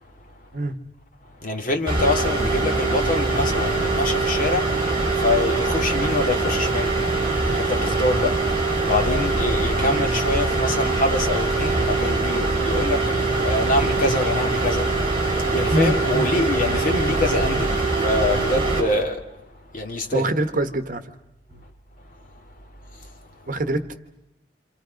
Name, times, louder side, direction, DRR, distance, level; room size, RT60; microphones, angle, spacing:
voice 1, 1.4-7.0 7.6-8.5 8.8-14.9 15.5-19.3 19.7-20.3 23.0-23.1, left 2 dB, 50° left, 2.3 m, -25 dB
sound 1, 1.9-18.8, right 3 dB, 30° right, 5.8 m, -23 dB
voice 2, 15.7-16.3 20.1-21.0 21.5-21.6 23.5-23.9, right 1 dB, 50° right, 1.3 m, -24 dB
28.0 x 28.0 x 5.2 m
head